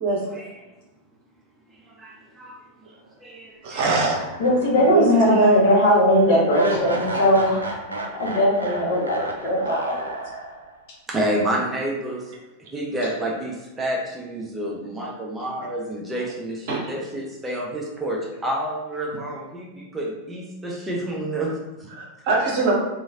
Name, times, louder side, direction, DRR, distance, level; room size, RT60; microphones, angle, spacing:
voice 1, 1.7-2.6 3.2-4.0 11.1-12.3 12.7-21.9, right 1 dB, 15° right, -2 dB, 0.5 m, -29 dB
voice 2, 3.6-4.2 4.9-5.6 16.7-16.9 22.0-22.8, right 3 dB, 50° right, -2 dB, 0.8 m, -22 dB
sound 1, 3.9-5.2 5.5-5.6 6.5-10.8, right 2 dB, 75° right, 0.4 m, -32 dB
voice 3, 4.4-7.6 7.9-10.1, equal, 50° left, -4 dB, 1.0 m, -19 dB
3.0 x 2.4 x 2.7 m, 1.1 s
figure-of-eight pair, 90°, 0 cm